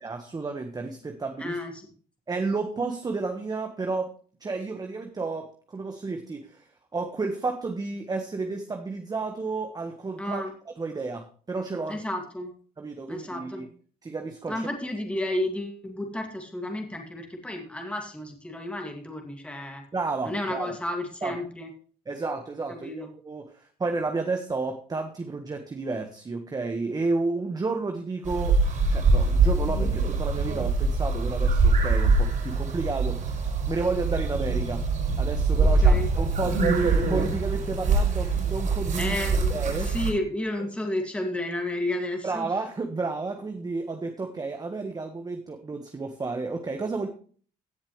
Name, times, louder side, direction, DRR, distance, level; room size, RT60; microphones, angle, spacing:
voice 1, 0.0-1.6 2.3-4.1 4.4-10.4 10.8-12.0 12.8-13.7 14.0-14.7 19.9-20.8 21.2-21.3 22.1-28.6 28.9-34.8 35.2-39.2 39.5-39.9 42.2-47.1, right 3 dB, 25° right, 5 dB, 1.4 m, -31 dB
voice 2, 1.4-1.9 10.2-10.5 11.9-12.5 13.1-13.7 14.5-19.8 20.2-21.7 22.7-23.1 35.6-36.1 39.0-42.5, left 1 dB, 5° left, 2 dB, 2.3 m, -32 dB
sound 1, 28.3-40.1, right 3 dB, 50° right, 5.3 m, -24 dB
16.5 x 7.2 x 3.2 m, 0.43 s
cardioid pair, 110°, 17 cm